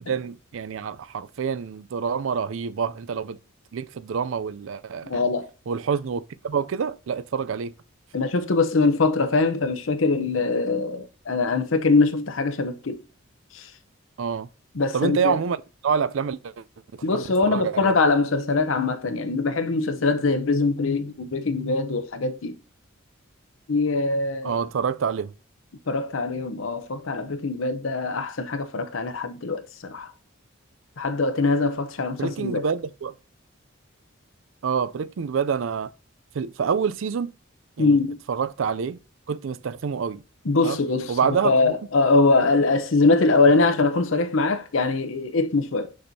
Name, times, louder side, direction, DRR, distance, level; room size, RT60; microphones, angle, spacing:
voice 1, 0.0-3.4 3.7-5.2 5.7-7.7 14.2-14.5 14.9-15.6 15.8-16.6 16.9-17.9 24.4-25.3 32.2-33.1 34.6-35.9 36.3-37.3 37.8-38.0 38.3-39.0 39.3-40.2 40.6-40.8 41.1-41.8, right 6 dB, 65° right, 0.4 m, -27 dB
voice 2, 5.0-5.5 8.1-13.0 13.5-13.7 14.7-15.4 17.0-22.6 23.7-24.6 25.9-30.1 31.0-32.7 37.8-38.2 40.4-41.2 41.4-45.9, left 3 dB, 65° left, 0.8 m, -22 dB
6.4 x 6.1 x 2.7 m
head